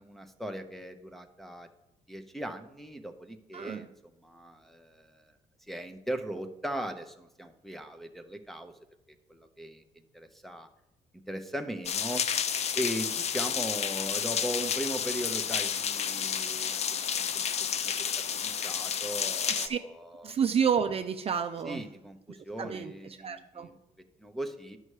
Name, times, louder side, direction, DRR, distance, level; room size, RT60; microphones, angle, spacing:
voice 1, 0.0-1.7 2.1-3.9 4.2-5.2 5.7-8.7 9.3-9.8 10.1-10.7 11.3-12.2 12.7-16.8 17.1-17.4 17.8-17.9 18.3-20.3 21.7-23.8 24.2-24.8, right 1 dB, ahead, 4 dB, 0.8 m, -38 dB
voice 2, 3.5-3.9 19.5-19.8 20.2-21.8 22.6-22.9 23.2-23.7, right 7 dB, 35° right, 7 dB, 0.5 m, -29 dB
sound 1, 11.8-19.7, left 7 dB, 40° left, 0.5 m, -31 dB
10.5 x 5.5 x 4.9 m, 0.90 s
cardioid pair, 110°, 17 cm